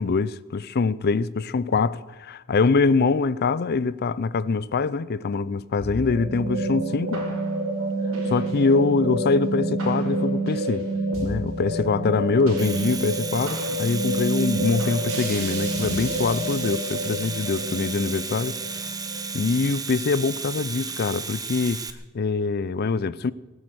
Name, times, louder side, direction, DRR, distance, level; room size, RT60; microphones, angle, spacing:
voice 1, 0.0-7.2 8.3-10.8 11.2-18.9 19.3-21.8 22.1-23.3, left 4 dB, 50° left, 0.5 m, -24 dB
sound 1, 5.8-20.2, right 1 dB, 70° right, 3.9 m, -28 dB
Domestic sounds home sounds, 12.4-21.9, right 5 dB, 20° right, 1.0 m, -34 dB
19.0 x 9.7 x 7.8 m
head